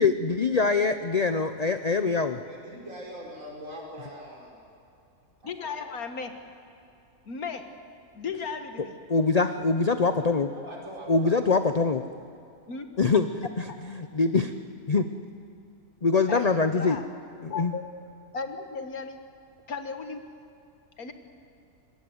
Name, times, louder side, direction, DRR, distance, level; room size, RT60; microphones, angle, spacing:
voice 1, 0.0-2.4 9.1-10.5 11.1-12.0 13.0-13.3 14.0-14.5 14.9-15.0 16.0-17.0 17.4-17.7, left 4 dB, 40° left, 9 dB, 0.6 m, -23 dB
voice 2, 2.4-4.6 5.4-5.8 10.5-11.4, equal, 55° right, -2 dB, 5.5 m, -42 dB
voice 3, 5.4-6.3 7.3-7.7 8.1-9.0 12.7-12.9 13.7-13.8 16.3-17.0 17.5-17.8 18.3-19.2 19.7-20.3 21.0-21.1, left 5 dB, 70° left, 7 dB, 2.0 m, -35 dB
25.0 x 21.5 x 8.0 m, 2.7 s
omnidirectional pair, 1.6 m